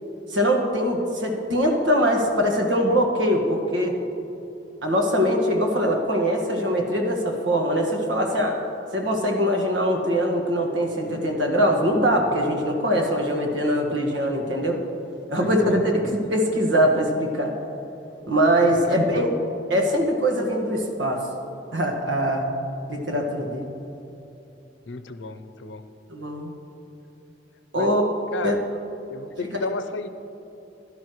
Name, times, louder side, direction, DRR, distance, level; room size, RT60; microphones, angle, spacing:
voice 1, 0.3-3.9 4.8-8.6 8.9-14.8 15.3-17.5 18.3-19.3 19.7-21.3 21.7-22.5 22.9-23.7 26.1-26.5 27.7-28.1 28.4-28.5 29.5-29.7, equal, 80° right, 1 dB, 1.7 m, -22 dB
voice 2, 15.4-16.2 18.6-19.2 24.9-25.8 27.8-27.9 28.3-28.6 29.1-30.1, left 3 dB, 75° left, 10 dB, 0.7 m, -33 dB
16.5 x 11.5 x 3.2 m, 3.0 s
head